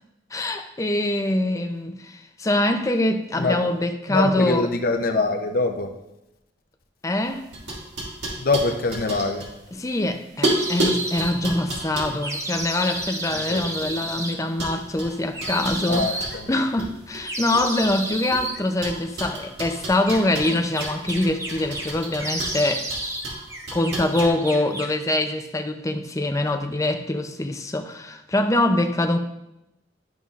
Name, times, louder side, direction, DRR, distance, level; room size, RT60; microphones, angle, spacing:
voice 1, 0.3-4.7 7.0-7.5 9.7-22.9 23.7-29.2, left 1 dB, 20° left, 0.5 m, -24 dB
voice 2, 4.1-5.9 8.4-9.5 11.6-11.7 13.3-13.7 14.0-14.1 15.9-16.5, left 3 dB, 55° left, 0.7 m, -24 dB
sound 1, 7.2-10.0 10.4-14.1 14.6-16.9 17.1-18.4 18.8-24.3, right 1 dB, 75° right, 2.1 m, -31 dB
sound 2, 10.6-11.3 12.2-14.3 15.3-16.4 17.2-18.6 20.1-21.9 22.2-23.3 23.5-25.0, right 1 dB, 15° right, 0.8 m, -31 dB
12.0 x 5.4 x 2.4 m
head